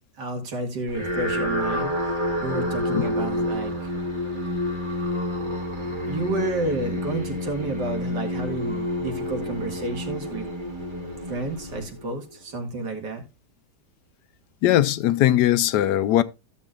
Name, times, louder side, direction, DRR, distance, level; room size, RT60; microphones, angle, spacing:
voice 1, 0.2-3.9 5.8-10.5 11.3-13.2, right 2 dB, 75° right, 2.5 m, -31 dB
sound 1, 0.9-12.3, left 1 dB, 30° right, 1.8 m, -29 dB
voice 2, 14.6-16.2, left 13 dB, 75° left, 1.2 m, -19 dB
15.0 x 7.1 x 2.4 m
omnidirectional pair, 1.8 m